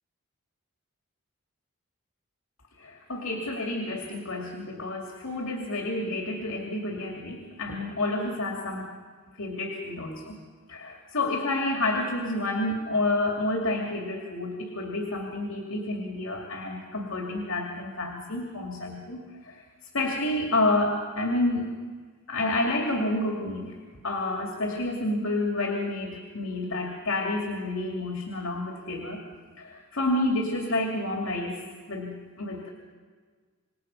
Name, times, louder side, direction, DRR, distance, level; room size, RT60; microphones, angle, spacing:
voice 1, 2.8-8.9 9.4-10.4 10.7-19.6 19.9-21.7 22.3-23.7 24.0-29.2 29.6-31.6 31.9-32.7, left 2 dB, 75° left, 0 dB, 2.6 m, -29 dB
27.0 x 20.0 x 5.5 m, 1.5 s
head